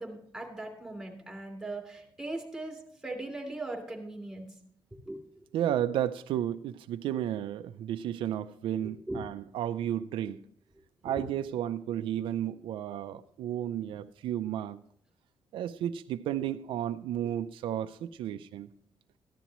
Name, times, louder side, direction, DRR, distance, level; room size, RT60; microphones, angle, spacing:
voice 1, 0.0-4.5 5.0-5.2 8.8-9.2 11.0-11.2, right 2 dB, ahead, 1 dB, 2.9 m, -39 dB
voice 2, 5.5-10.4 11.0-14.8 15.5-18.7, right 11 dB, 90° right, 10 dB, 0.4 m, -33 dB
14.5 x 11.0 x 3.0 m, 0.67 s
cardioid pair, 140°, 8 cm